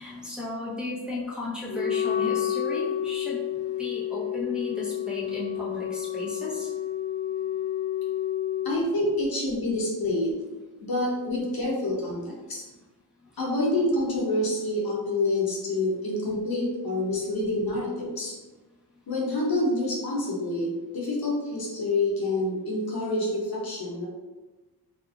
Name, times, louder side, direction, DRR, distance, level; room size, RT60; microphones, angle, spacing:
voice 1, 0.0-6.7, left 1 dB, ahead, -8 dB, 0.8 m, -35 dB
Wind instrument woodwind instrument, 1.7-8.7, left 10 dB, 50° left, 0.4 m, -30 dB
voice 2, 8.6-10.4 10.8-12.6 13.4-18.3 19.1-24.1, left 2 dB, 65° left, -4 dB, 0.9 m, -27 dB
2.8 x 2.5 x 2.5 m, 1.2 s
wide cardioid pair, 95°, 39 cm